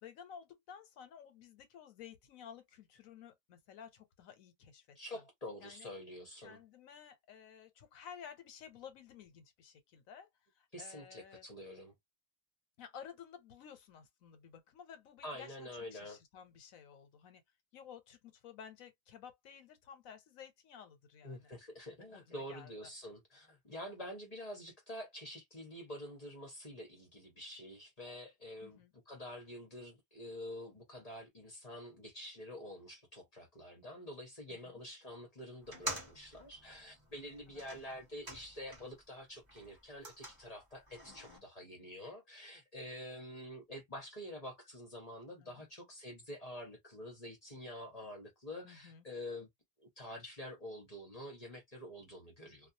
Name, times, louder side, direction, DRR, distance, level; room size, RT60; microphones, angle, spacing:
voice 1, 0.0-5.0 5.6-5.9 6.4-10.3 10.5-11.4 12.8-17.4 17.7-21.5 22.1-22.7 28.6-28.9 34.5-34.8 37.5-37.6 41.1-41.4 45.4-45.6 48.6-49.1, left 8 dB, 85° left, 1.1 m, -54 dB
voice 2, 4.9-6.6 10.7-11.9 15.2-16.2 21.2-28.8 29.1-49.5 49.8-52.7, left 1 dB, 35° left, 0.9 m, -47 dB
sound 1, 35.6-39.1 39.4-41.4, right 1 dB, 20° right, 0.8 m, -47 dB
2.4 x 2.3 x 2.6 m
omnidirectional pair, 1.4 m